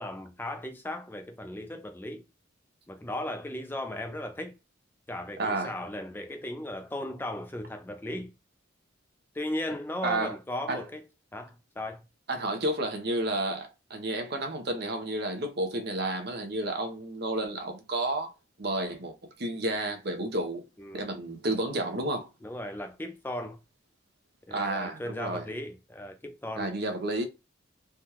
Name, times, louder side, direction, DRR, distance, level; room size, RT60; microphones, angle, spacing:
voice 1, 0.0-2.2 2.9-4.5 5.1-8.3 9.3-11.0 11.3-12.0 20.8-21.1 22.4-23.6 24.5-26.7, left 1 dB, 10° left, 0.4 m, -36 dB
voice 2, 5.4-5.7 10.0-10.3 10.7-10.8 12.3-18.3 18.6-20.6 20.9-22.3 24.5-25.5 26.5-27.2, right 2 dB, 50° right, 0.7 m, -31 dB
3.4 x 2.3 x 2.9 m
head